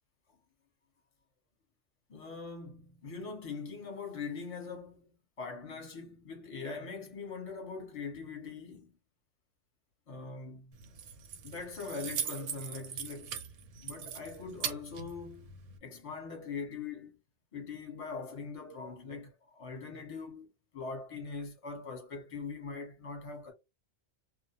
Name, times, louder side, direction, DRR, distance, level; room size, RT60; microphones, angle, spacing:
voice 1, 2.1-9.0 10.1-10.8 11.4-13.4 13.8-17.2 17.5-20.5 20.7-23.5, left 4 dB, 30° left, 0.8 m, -42 dB
Keys jangling, 10.7-15.8, right 8 dB, 70° right, 0.9 m, -41 dB
2.4 x 2.0 x 2.8 m
omnidirectional pair, 1.4 m